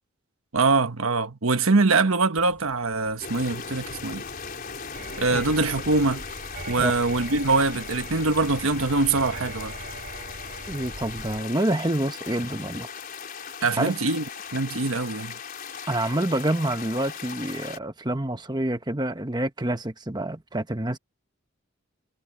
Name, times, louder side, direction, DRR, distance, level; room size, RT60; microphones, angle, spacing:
voice 1, 0.5-4.2 5.2-6.2 6.7-9.7 13.6-14.2 14.5-15.3, right 3 dB, 70° right, 1.2 m, -23 dB
Vehicle horn car horn honking, 2.4-7.5, left 1 dB, 10° left, 7.8 m, -51 dB
sound 1, 3.2-17.8, left 6 dB, 40° left, 4.8 m, -38 dB
sound 2, 4.9-11.4, right 2 dB, 50° right, 4.2 m, -40 dB
voice 2, 10.7-12.9 13.8-14.0 15.9-21.0, right 1 dB, 20° right, 1.2 m, -27 dB
head